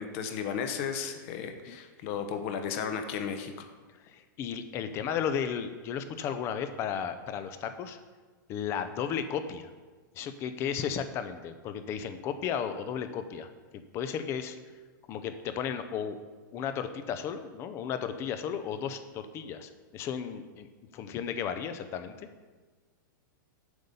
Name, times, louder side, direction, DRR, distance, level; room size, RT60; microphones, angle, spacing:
voice 1, 0.0-3.5, left 7 dB, 40° left, 7 dB, 0.9 m, -34 dB
voice 2, 4.0-8.0 8.5-9.7 10.2-13.5 13.9-14.6 15.1-16.2 16.5-20.7 20.9-22.3, left 8 dB, 25° left, 10 dB, 0.6 m, -34 dB
7.9 x 6.8 x 5.5 m, 1.4 s
supercardioid pair, 160°, 11 cm